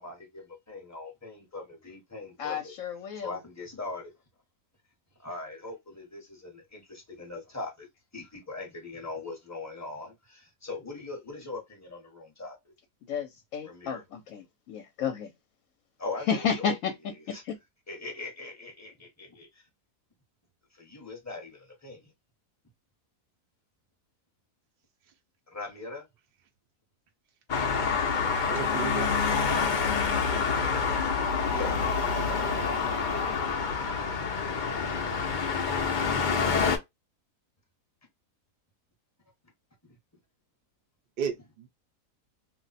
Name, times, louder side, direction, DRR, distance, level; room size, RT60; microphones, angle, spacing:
voice 1, 0.0-2.7 3.1-4.1 5.2-7.9 8.1-12.6 13.6-14.0 16.0-16.7 17.3-17.4 17.9-19.6 20.7-22.1 25.5-26.0 31.5-32.3 39.8-39.9, left 3 dB, 15° left, 0.7 m, -40 dB
voice 2, 2.4-3.4 13.1-15.3 16.3-16.9 17.3-17.6, left 7 dB, 70° left, 0.9 m, -31 dB
Traffic noise roadway noise, 27.5-36.8, left 5 dB, 85° left, 0.4 m, -27 dB
voice 3, 28.5-29.2 41.2-41.7, right 7 dB, 55° right, 0.7 m, -33 dB
2.5 x 2.1 x 3.9 m
omnidirectional pair, 1.6 m